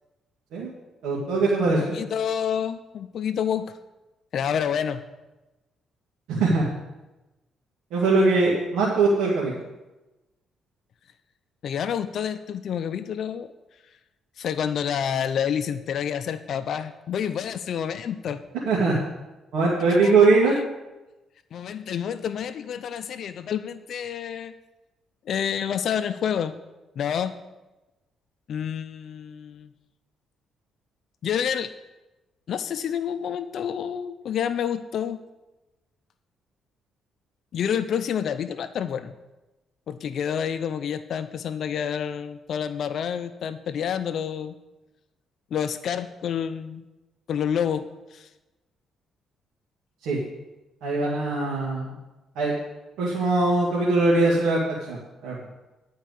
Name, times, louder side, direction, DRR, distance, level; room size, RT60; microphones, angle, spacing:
voice 1, 1.0-2.0 6.3-6.7 7.9-9.5 18.7-19.1 19.5-20.6 50.0-50.2 50.8-51.9 52.4-52.6 53.0-54.6 54.9-55.0 55.2-55.4, right 3 dB, 90° right, -6 dB, 2.0 m, -21 dB
voice 2, 1.7-3.7 4.3-5.0 11.6-13.5 14.4-18.4 19.9-20.1 21.5-24.5 25.3-26.5 27.0-27.3 28.5-29.7 31.2-31.7 32.5-35.2 37.5-39.1 39.9-44.5 45.5-46.8 47.3-48.3, left 8 dB, 65° left, 11 dB, 0.5 m, -28 dB
11.0 x 4.7 x 8.0 m, 1.1 s
cardioid pair, 90°, 0 cm